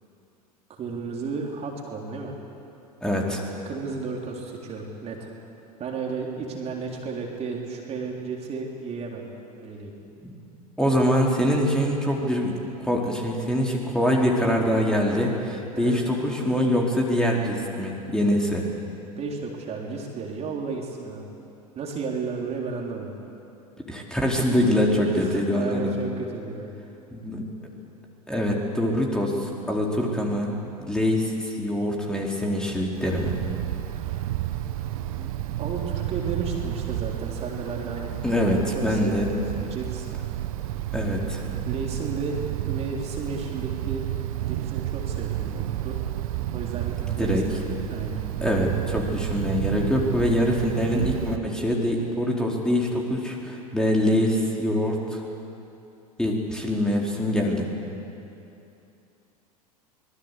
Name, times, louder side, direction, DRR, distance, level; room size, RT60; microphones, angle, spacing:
voice 1, 0.7-2.4 3.7-5.3 5.8-9.3 9.5-9.9 15.7-16.0 19.2-21.3 21.8-23.1 24.4-24.6 25.2-26.7 33.9-34.2 35.2-35.3 35.6-40.1 41.4-44.0 44.4-46.0 46.5-48.2, right 4 dB, 30° right, 0 dB, 3.7 m, -33 dB
voice 2, 3.0-3.4 10.8-18.7 23.9-25.9 27.1-27.4 28.3-33.4 38.2-39.3 40.9-41.4 47.0-47.5 48.4-55.2 56.2-57.7, equal, 5° left, -1 dB, 4.0 m, -24 dB
Wind, 33.0-51.4, right 13 dB, 60° right, 1.3 m, -31 dB
25.0 x 21.0 x 8.4 m, 2.8 s
figure-of-eight pair, 85°, 20 cm